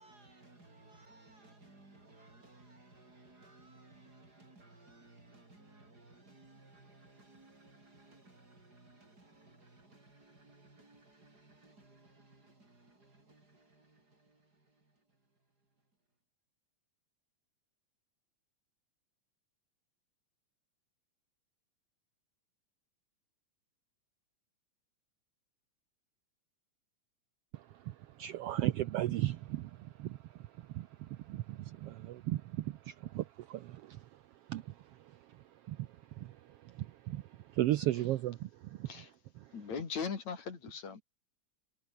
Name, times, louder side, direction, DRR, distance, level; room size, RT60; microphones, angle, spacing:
voice 1, 0.0-16.1, right 2 dB, 30° right, 5.7 m, -60 dB
voice 2, 27.5-38.9 39.4-39.5, right 14 dB, 80° right, 1.3 m, -37 dB
voice 3, 39.5-41.0, left 6 dB, 60° left, 4.6 m, -39 dB
omnidirectional pair, 3.6 m